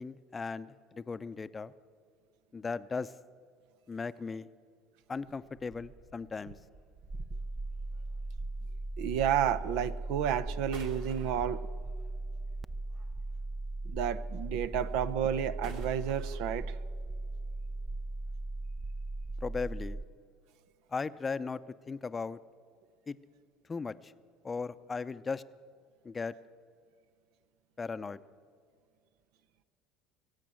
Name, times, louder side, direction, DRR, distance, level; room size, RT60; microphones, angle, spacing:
voice 1, 0.0-1.7 2.5-3.1 3.9-4.5 5.1-6.6 19.4-20.0 20.9-21.6 21.9-22.4 23.1-23.2 23.7-24.1 24.4-25.4 26.0-26.3 27.8-28.2, left 4 dB, 25° left, 14 dB, 0.6 m, -37 dB
sound 1, 5.1-13.6 13.9-19.2, right 3 dB, 90° right, 3.5 m, -56 dB
sound 2, 7.1-20.1, right 2 dB, 15° right, 0.4 m, -38 dB
voice 2, 9.0-11.6 13.9-16.8, right 9 dB, 70° right, 12 dB, 0.6 m, -31 dB
22.0 x 8.4 x 7.6 m, 2.2 s
hypercardioid pair, 75°, 0 cm